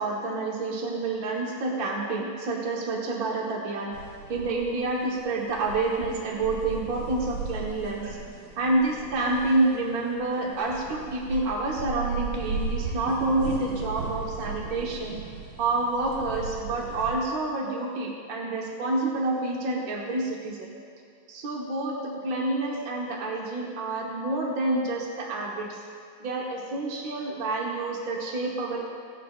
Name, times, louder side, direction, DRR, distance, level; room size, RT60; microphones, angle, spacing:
voice 1, 0.0-4.0 4.3-8.2 8.6-15.2 15.6-20.7 21.3-25.8 26.2-28.8, right 2 dB, 70° right, -2 dB, 0.8 m, -28 dB
sound 1, 3.9-17.2, right 4 dB, 45° right, 2.6 m, -36 dB
17.0 x 10.0 x 2.4 m, 2.3 s
omnidirectional pair, 3.4 m